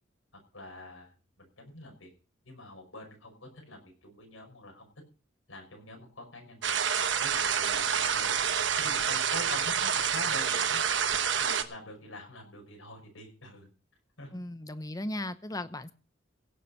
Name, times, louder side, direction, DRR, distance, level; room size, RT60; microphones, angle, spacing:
voice 1, 0.5-2.1 2.4-4.9 5.5-6.8 7.2-8.4 8.8-10.8 11.4-13.7 14.2-14.3 15.5-15.6, left 2 dB, 85° left, 5.6 m, -46 dB
sound 1, 6.6-11.6, right 7 dB, 60° right, 1.2 m, -28 dB
voice 2, 14.3-15.9, left 1 dB, 20° left, 0.7 m, -36 dB
16.5 x 7.2 x 6.5 m
head